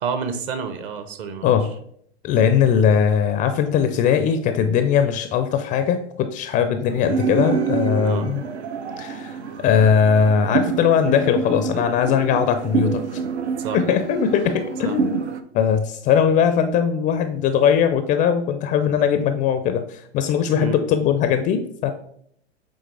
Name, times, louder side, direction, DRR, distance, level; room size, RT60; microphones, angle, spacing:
voice 1, 0.0-1.6 8.0-8.3 13.6-13.8 14.8-15.0 20.6-20.8, right 6 dB, 45° right, 9 dB, 1.0 m, -29 dB
voice 2, 2.2-8.4 9.0-13.0 13.7-15.2 15.5-21.9, left 7 dB, 25° left, 9 dB, 0.4 m, -20 dB
sound 1, 6.9-15.4, right 5 dB, 80° right, 0.7 m, -27 dB
7.8 x 3.6 x 3.3 m, 0.66 s
hypercardioid pair, 100°, 34 cm